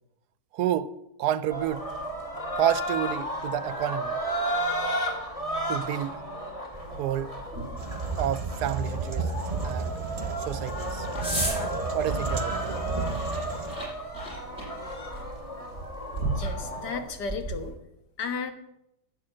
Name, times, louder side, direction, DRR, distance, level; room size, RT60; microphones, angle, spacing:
voice 1, 0.5-0.9 1.2-1.9 2.6-4.2 5.7-6.2 7.0-7.3 8.2-9.9 10.4-11.1 11.9-12.6, right 11 dB, 80° right, 1.2 m, -29 dB
sound 1, 1.5-17.0, right 1 dB, 20° left, 2.3 m, -33 dB
sound 2, 6.7-17.7, right 1 dB, 40° left, 7.1 m, -37 dB
sound 3, 7.8-13.8, right 4 dB, 30° right, 0.7 m, -33 dB
voice 2, 16.4-17.7 18.2-18.5, left 5 dB, 85° left, 2.0 m, -33 dB
11.5 x 9.0 x 7.7 m
omnidirectional pair, 1.7 m